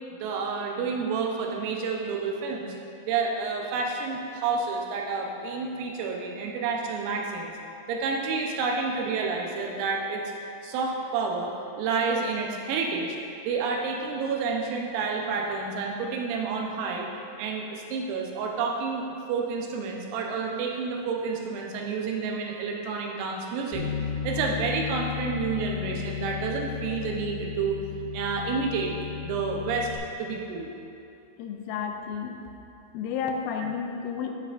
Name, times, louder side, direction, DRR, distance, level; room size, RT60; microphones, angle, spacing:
voice 1, 0.1-2.8 3.0-7.5 7.9-10.2 10.6-13.2 13.5-17.1 17.4-23.9 24.2-27.8 28.1-28.9 29.2-29.9 30.2-30.7, right 4 dB, 85° right, 0 dB, 3.4 m, -29 dB
Bass guitar, 23.7-30.0, left 9 dB, 65° left, 3.3 m, -34 dB
voice 2, 31.4-32.4 32.9-34.3, left 6 dB, 85° left, 3 dB, 3.1 m, -31 dB
9.7 x 8.1 x 2.5 m, 2.8 s
omnidirectional pair, 5.8 m